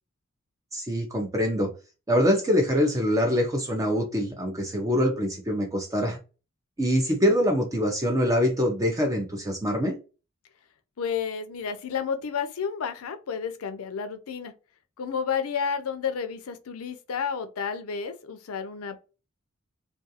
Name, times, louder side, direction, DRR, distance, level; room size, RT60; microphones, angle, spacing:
voice 1, 0.7-1.7 2.1-6.2 6.8-10.0, equal, 15° right, 0.5 m, -24 dB
voice 2, 11.0-14.5 15.0-19.0, left 6 dB, 70° left, 0.5 m, -31 dB
2.4 x 2.3 x 2.7 m
head